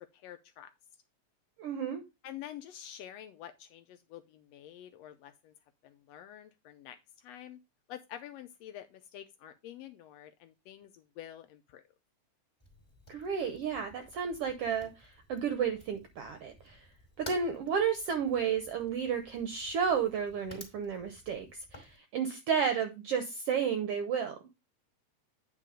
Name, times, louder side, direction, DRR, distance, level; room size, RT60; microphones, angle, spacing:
voice 1, 0.1-0.7 2.2-5.5 5.8-7.6 7.9-11.8, left 11 dB, 80° left, 1.6 m, -48 dB
voice 2, 1.6-2.0 13.1-16.9 17.2-24.4, right 7 dB, 70° right, 1.5 m, -32 dB
Fire, 12.6-22.0, left 1 dB, 15° left, 2.4 m, -53 dB
9.0 x 3.7 x 4.9 m
omnidirectional pair, 3.3 m